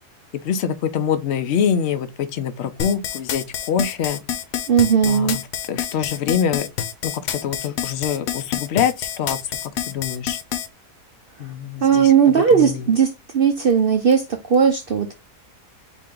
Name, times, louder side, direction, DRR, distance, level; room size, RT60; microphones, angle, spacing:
voice 1, 0.3-4.2 5.0-5.4 5.7-6.7 7.0-9.6 9.9-10.4 11.4-12.9, left 8 dB, 60° left, 0.7 m, -25 dB
sound 1, 2.8-10.7, left 9 dB, 80° left, 1.2 m, -27 dB
voice 2, 4.7-5.4 11.8-15.1, right 7 dB, 60° right, 0.5 m, -17 dB
4.4 x 3.0 x 3.6 m
omnidirectional pair, 1.7 m